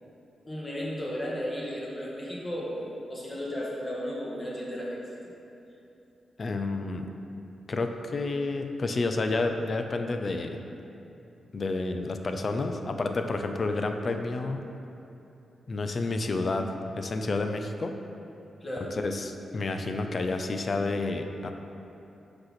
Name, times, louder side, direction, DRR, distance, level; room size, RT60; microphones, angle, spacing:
voice 1, 0.4-5.0 18.6-18.9, equal, 25° left, -5 dB, 1.4 m, -34 dB
voice 2, 6.4-7.1 7.7-10.6 11.5-14.7 15.7-16.7 17.0-18.0 18.9-21.5, left 3 dB, 45° left, 6 dB, 0.4 m, -30 dB
5.2 x 4.1 x 5.9 m, 2.9 s
cardioid pair, 90°, 0 cm